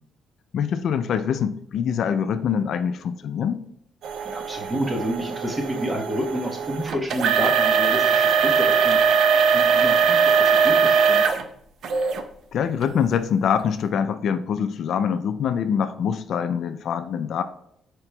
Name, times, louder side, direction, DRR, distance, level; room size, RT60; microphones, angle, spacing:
voice 1, 0.5-3.6 12.5-17.4, left 7 dB, 70° left, 10 dB, 0.3 m, -24 dB
sound 1, 4.0-11.4 11.8-12.2 12.8-12.9 13.6-13.7, right 6 dB, 70° right, 0.5 m, -20 dB
voice 2, 4.2-11.2, equal, 20° right, 1 dB, 1.1 m, -30 dB
4.9 x 4.4 x 2.2 m, 0.70 s
cardioid pair, 90°, 0 cm